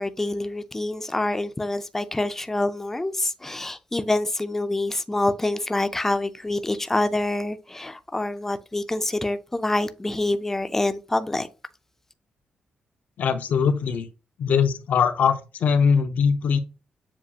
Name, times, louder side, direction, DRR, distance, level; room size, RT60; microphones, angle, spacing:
voice 1, 0.0-11.5, left 2 dB, 15° left, 0.4 m, -26 dB
voice 2, 13.2-14.1 14.4-16.6, left 6 dB, 70° left, 0.6 m, -21 dB
7.2 x 2.4 x 2.8 m
cardioid pair, 95°, 3 cm